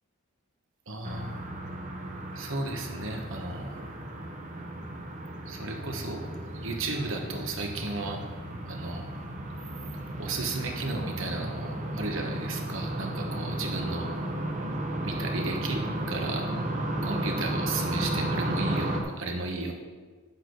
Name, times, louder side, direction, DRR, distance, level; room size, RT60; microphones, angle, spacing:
voice 1, 0.9-1.3 2.3-3.8 5.4-8.2 8.7-9.1 10.2-14.1 15.0-16.4 17.0-19.7, right 2 dB, 65° right, 3 dB, 1.2 m, -34 dB
sound 1, 1.0-19.0, right 1 dB, 35° right, 1.0 m, -34 dB
9.9 x 7.3 x 3.9 m, 1.4 s
head